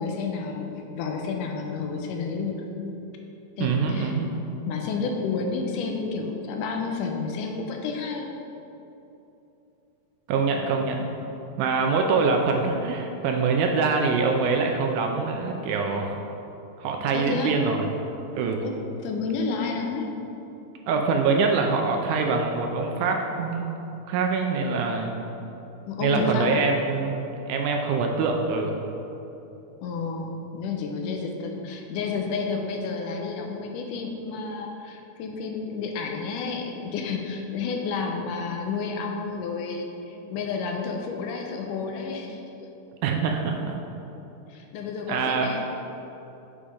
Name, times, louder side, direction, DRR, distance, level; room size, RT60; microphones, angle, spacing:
voice 1, 0.0-2.6 3.6-4.2 4.7-8.3 17.1-17.6 18.6-18.8 19.0-20.1 25.9-26.6 29.8-42.7 44.5-45.6, left 4 dB, 80° left, 2 dB, 2.2 m, -30 dB
voice 2, 3.6-4.4 10.3-11.1 11.6-16.2 16.8-17.9 18.3-18.7 20.9-23.8 24.1-25.2 26.0-28.9 43.0-43.8 45.1-45.5, right 4 dB, 80° right, 2 dB, 1.9 m, -24 dB
7.1 x 5.0 x 5.1 m, 2.9 s
omnidirectional pair, 3.8 m